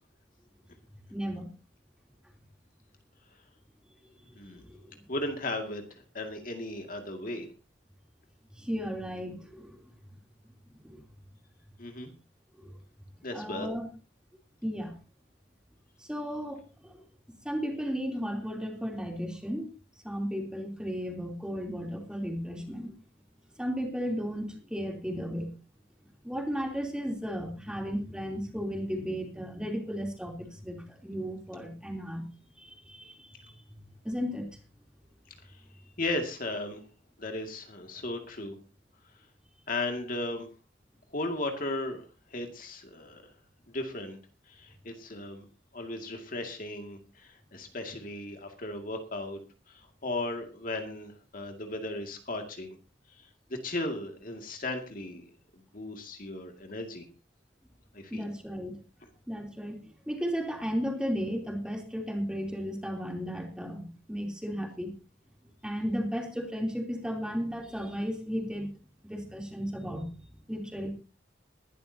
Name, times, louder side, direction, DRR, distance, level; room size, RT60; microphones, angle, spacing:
voice 1, 1.1-1.5 4.5-5.0 8.5-9.9 10.7-11.0 12.6-12.7 13.3-13.9 14.6-14.9 16.0-17.0 17.3-19.7 20.0-22.9 23.6-25.5 26.2-32.3 32.6-33.8 34.0-34.5 58.1-58.8 59.3-64.9 65.6-68.7 69.0-70.1 70.5-70.9, equal, 5° right, 2 dB, 3.2 m, -34 dB
voice 2, 5.1-7.5 11.8-12.1 13.2-13.7 36.0-36.8 37.2-38.6 39.7-40.5 41.1-43.2 43.7-44.2 44.5-45.4 45.7-49.4 49.7-52.8 53.2-53.3 53.6-55.2 55.7-57.1 57.9-58.2, left 2 dB, 45° left, 4 dB, 2.2 m, -36 dB
21.0 x 12.5 x 2.8 m, 0.32 s
head